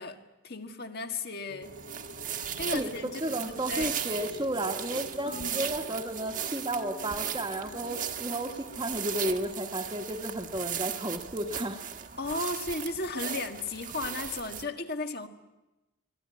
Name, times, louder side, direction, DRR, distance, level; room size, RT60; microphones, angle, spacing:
voice 1, 0.0-1.7 2.3-3.4 3.7-3.9 5.3-5.7 12.2-15.3, left 3 dB, 50° left, 1.7 m, -35 dB
sound 1, 1.5-9.2, equal, 80° left, 2.2 m, -48 dB
sound 2, 1.6-14.6, right 8 dB, 40° right, 1.4 m, -37 dB
voice 2, 3.2-11.8, right 1 dB, 20° right, 1.4 m, -33 dB
24.5 x 19.0 x 9.5 m
head